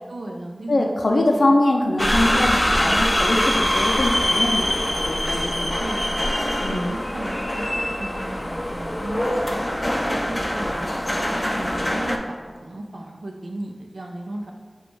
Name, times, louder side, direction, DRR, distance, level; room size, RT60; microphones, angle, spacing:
voice 1, 0.1-0.8 1.1-1.6 2.2-3.1 5.8-9.6 10.0-14.5, right 1 dB, 80° right, 2 dB, 0.4 m, -35 dB
voice 2, 0.7-5.9 6.2-6.3 6.6-6.9, left 1 dB, 80° left, 1 dB, 0.4 m, -23 dB
sound 1, 2.0-12.2, left 1 dB, 20° left, 0.4 m, -23 dB
5.1 x 2.3 x 4.5 m, 1.5 s
wide cardioid pair, 45°, 0 cm